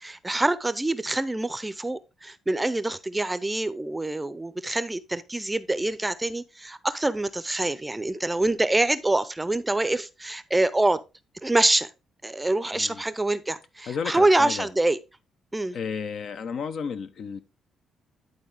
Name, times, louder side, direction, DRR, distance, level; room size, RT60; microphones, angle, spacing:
voice 1, 0.0-11.0 11.4-11.9 12.2-15.0 15.5-15.8, right 2 dB, 15° right, 0.6 m, -25 dB
voice 2, 12.7-13.0 13.9-14.7 15.7-17.4, left 6 dB, 65° left, 0.8 m, -32 dB
11.0 x 4.1 x 3.5 m
cardioid pair, 90°, 0 cm